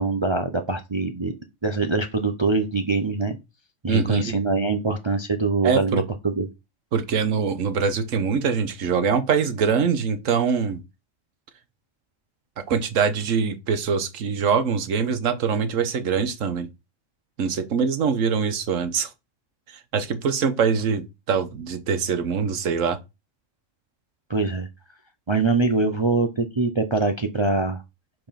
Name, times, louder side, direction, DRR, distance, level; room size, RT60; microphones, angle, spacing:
voice 1, 0.0-1.3 1.6-3.4 3.8-6.5 24.3-24.7 25.3-27.8, right 3 dB, 30° right, 0.6 m, -23 dB
voice 2, 3.9-4.4 5.6-6.0 6.9-10.8 12.7-16.7 17.4-19.1 19.7-23.0, right 6 dB, 80° right, 1.3 m, -23 dB
5.3 x 4.6 x 5.8 m
omnidirectional pair, 1.3 m